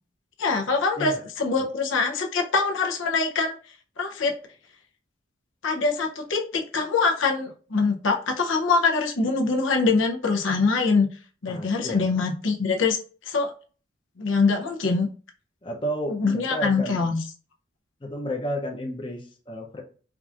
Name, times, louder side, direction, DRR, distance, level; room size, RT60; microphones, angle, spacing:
voice 1, 0.4-3.5 4.0-4.3 5.6-11.1 11.4-13.0 13.3-13.5 14.2-15.1 16.1-17.2, left 4 dB, 80° left, 3 dB, 0.6 m, -24 dB
voice 2, 11.5-12.0 15.6-17.0 18.0-19.8, equal, 25° left, 1 dB, 0.6 m, -32 dB
4.6 x 2.5 x 2.4 m, 0.39 s
head